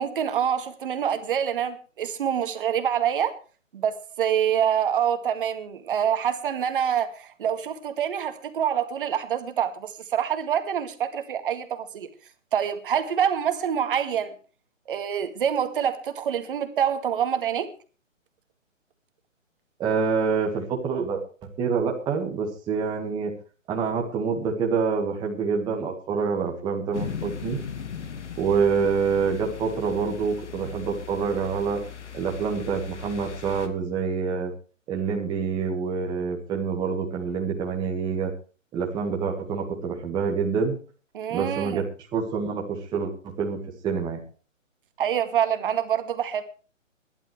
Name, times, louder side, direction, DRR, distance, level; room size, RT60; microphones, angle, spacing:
voice 1, 0.0-3.3 3.7-12.1 12.5-14.3 14.9-17.7 41.1-41.8 45.0-46.4, right 9 dB, 40° right, 9 dB, 2.1 m, -26 dB
voice 2, 19.8-21.2 21.6-23.3 23.7-27.6 28.4-31.8 32.1-34.5 34.9-38.3 38.7-40.7 41.3-41.8 42.1-44.2, right 5 dB, 10° right, 0 dB, 1.8 m, -26 dB
sound 1, 26.9-33.7, left 7 dB, 60° left, 2.4 m, -38 dB
22.0 x 11.5 x 3.3 m, 0.36 s
hypercardioid pair, 150°, 39 cm